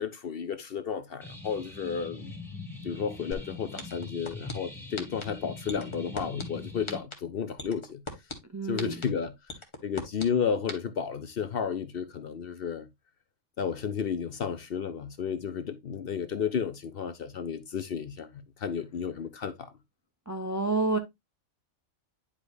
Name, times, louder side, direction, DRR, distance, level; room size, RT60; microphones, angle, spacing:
voice 1, 0.0-2.3 2.8-8.0 8.7-9.3 9.8-12.9 13.6-18.3 18.6-19.7, left 7 dB, 55° left, 0.7 m, -32 dB
sound 1, 1.2-7.0, left 2 dB, ahead, 2.2 m, -43 dB
sound 2, 3.3-3.4 3.8-4.5 5.0-5.2 5.7-6.4 6.9-7.1 7.6-8.3 8.8-9.0 9.5-10.3 10.7-10.8, left 2 dB, 25° left, 1.3 m, -36 dB
voice 2, 8.5-9.0 20.3-21.0, right 3 dB, 20° right, 0.5 m, -28 dB
10.0 x 4.9 x 2.6 m
omnidirectional pair, 1.3 m